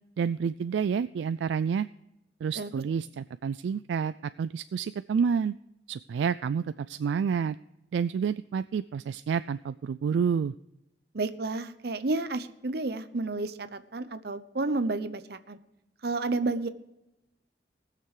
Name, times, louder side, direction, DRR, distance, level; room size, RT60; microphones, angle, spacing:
voice 1, 0.2-1.9 2.4-5.5 5.9-7.6 7.9-10.5, right 6 dB, 75° right, 13 dB, 0.3 m, -29 dB
voice 2, 11.1-15.6 16.0-16.7, right 3 dB, 60° right, 12 dB, 0.8 m, -31 dB
19.0 x 6.8 x 4.9 m, 0.91 s
head